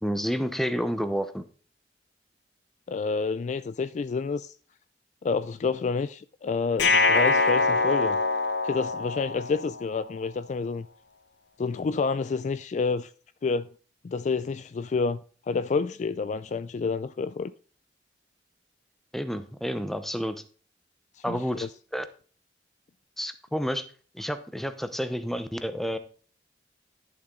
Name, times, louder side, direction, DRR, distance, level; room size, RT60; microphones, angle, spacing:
voice 1, 0.0-1.4 19.1-20.4 21.2-22.0 23.2-23.8 24.1-26.0, equal, ahead, 0.8 m, -30 dB
voice 2, 2.9-4.5 5.2-8.2 8.6-10.9 11.6-13.1 13.4-13.7 14.0-15.2 15.5-17.5 21.3-21.7, left 4 dB, 45° left, 0.3 m, -29 dB
sound 1, 6.8-9.9, left 3 dB, 90° left, 0.8 m, -24 dB
11.5 x 6.8 x 3.7 m
head